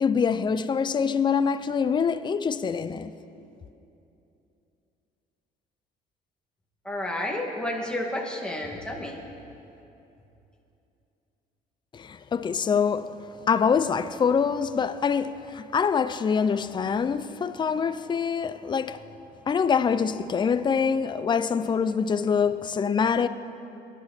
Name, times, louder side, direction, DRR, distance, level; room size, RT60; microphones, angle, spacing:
voice 1, 0.0-3.1 11.9-13.1 13.5-19.0 19.5-23.3, left 6 dB, 25° left, 0.5 m, -25 dB
voice 2, 6.8-9.2, left 1 dB, 5° left, 2.3 m, -31 dB
23.5 x 11.0 x 4.4 m
cardioid pair, 110°, 17 cm